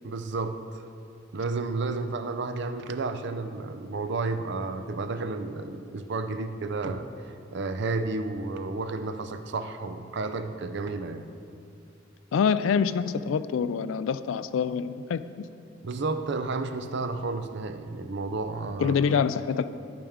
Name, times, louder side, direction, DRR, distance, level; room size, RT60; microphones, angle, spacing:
voice 1, 0.0-0.8 1.3-11.3 15.8-19.2, right 3 dB, 60° right, 9 dB, 0.5 m, -32 dB
voice 2, 12.3-15.3 18.8-19.7, left 6 dB, 75° left, 14 dB, 0.3 m, -25 dB
10.0 x 8.8 x 3.6 m, 2.5 s
head